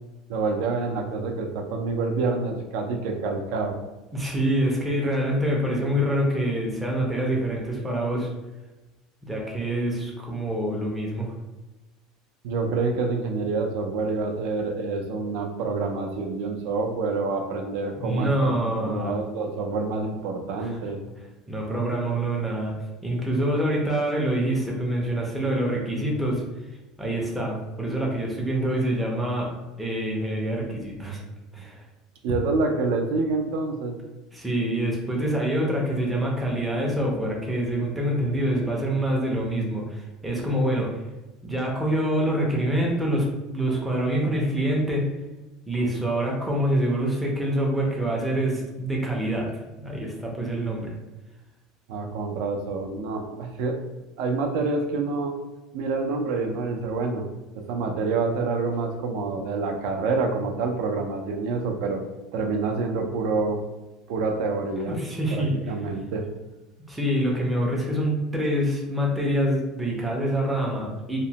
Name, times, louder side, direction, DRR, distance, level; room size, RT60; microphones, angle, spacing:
voice 1, 0.3-3.8 12.4-21.0 32.2-34.0 51.9-53.8 54.2-55.3 55.7-57.3 57.6-62.0 62.3-63.6 64.1-65.0 65.3-66.3, right 3 dB, 60° right, 3 dB, 0.4 m, -27 dB
voice 2, 4.1-8.3 9.2-11.3 18.0-19.1 20.6-20.8 21.5-22.7 23.0-26.4 27.0-29.5 29.8-31.2 31.5-31.8 34.3-41.0 41.4-45.0 45.7-49.5 49.8-50.9 64.9-65.7 66.9-71.2, right 1 dB, 5° right, -3 dB, 0.4 m, -26 dB
2.9 x 2.1 x 2.8 m, 1.1 s
cardioid pair, 175°, 0 cm